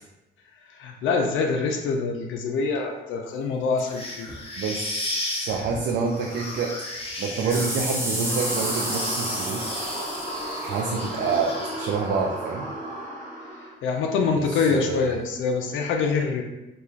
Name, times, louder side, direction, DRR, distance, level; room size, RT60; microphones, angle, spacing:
voice 1, 0.7-4.5 13.8-16.4, left 4 dB, 80° left, 2 dB, 0.4 m, -25 dB
sound 1, 3.9-12.2, left 1 dB, 30° left, 0.7 m, -35 dB
voice 2, 4.6-6.8 7.2-9.8 10.6-12.7 14.3-15.2, right 5 dB, 65° right, 0 dB, 0.4 m, -27 dB
sound 2, 7.5-11.2 11.8-11.9, right 1 dB, 10° right, 0.7 m, -31 dB
sound 3, 8.2-13.7, right 1 dB, 40° right, 1.2 m, -34 dB
3.0 x 2.3 x 2.4 m, 1.0 s
cardioid pair, 90°, 20 cm